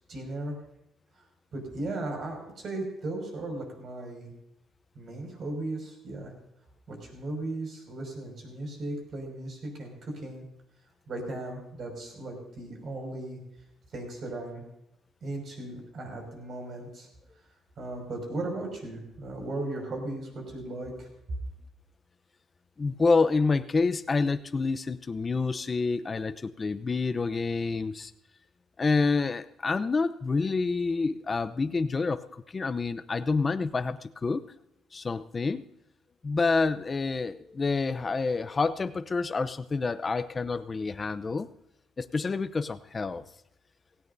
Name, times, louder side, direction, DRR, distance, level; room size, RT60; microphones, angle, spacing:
voice 1, 0.1-0.6 1.5-4.3 4.9-6.3 6.9-10.5 11.1-13.4 13.9-14.6 15.2-17.1 17.8-21.1, right 2 dB, 50° right, 2 dB, 5.7 m, -36 dB
voice 2, 22.8-28.1 28.8-32.2 32.5-34.4 34.9-35.6 36.2-41.5 42.0-43.2, left 4 dB, 30° left, 12 dB, 0.7 m, -28 dB
17.5 x 17.0 x 2.7 m, 0.83 s
cardioid pair, 105°, 0 cm